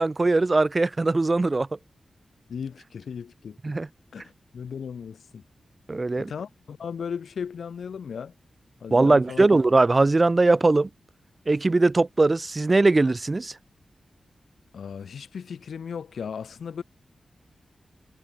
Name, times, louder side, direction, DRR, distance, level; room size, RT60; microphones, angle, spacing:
voice 1, 0.0-1.7 3.6-3.9 5.9-6.3 8.9-10.9 11.5-13.5, right 3 dB, 35° right, 2.2 m, -20 dB
voice 2, 2.5-3.6 4.1-4.2 4.5-5.4 6.2-8.3 8.8-9.5 14.7-16.8, left 6 dB, 85° left, 1.6 m, -36 dB
cardioid pair, 55°, 0 cm